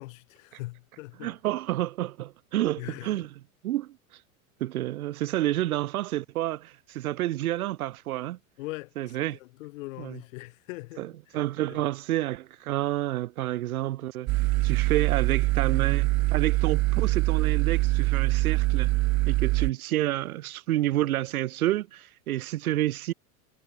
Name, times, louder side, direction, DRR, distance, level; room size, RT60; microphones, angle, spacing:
voice 1, 0.0-1.3 2.8-3.3 8.6-11.4 11.7-11.8, left 21 dB, 65° left, 7.7 m, -41 dB
voice 2, 1.2-3.3 3.6-4.0 4.6-8.4 9.0-9.4 10.0-10.2 11.0-14.3 14.6-18.9 19.3-23.1, right 15 dB, 80° right, 3.6 m, -29 dB
sound 1, 14.3-19.7, right 21 dB, 40° right, 1.7 m, -24 dB
supercardioid pair, 140°, 43 cm